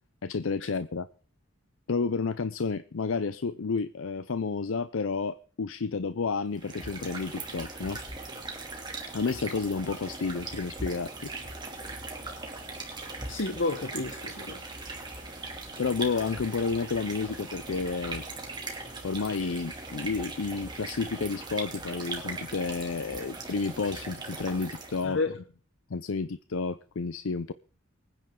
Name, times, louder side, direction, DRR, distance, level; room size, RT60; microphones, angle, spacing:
voice 1, 0.2-1.1 1.9-8.0 9.1-11.3 15.8-18.2 19.0-25.2 25.9-27.5, left 4 dB, 85° left, 0.6 m, -31 dB
sound 1, 6.5-25.1, right 3 dB, 20° right, 2.6 m, -39 dB
voice 2, 13.3-14.6 25.0-25.3, left 3 dB, 65° left, 1.1 m, -30 dB
24.5 x 9.9 x 3.8 m
head